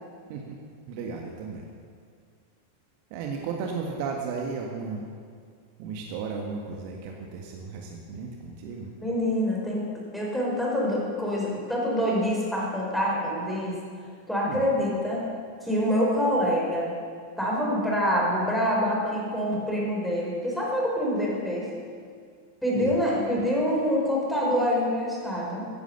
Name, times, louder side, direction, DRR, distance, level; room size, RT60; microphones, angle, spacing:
voice 1, 0.9-1.6 3.1-5.0 5.8-8.9 14.5-14.6 22.8-23.0, right 5 dB, 45° right, 1 dB, 1.6 m, -34 dB
voice 2, 9.0-9.8 10.1-13.7 14.3-15.3 15.6-16.9 17.4-21.7 22.6-25.6, equal, ahead, -4 dB, 5.0 m, -26 dB
15.5 x 10.5 x 6.8 m, 2.1 s
figure-of-eight pair, 90°, 0 cm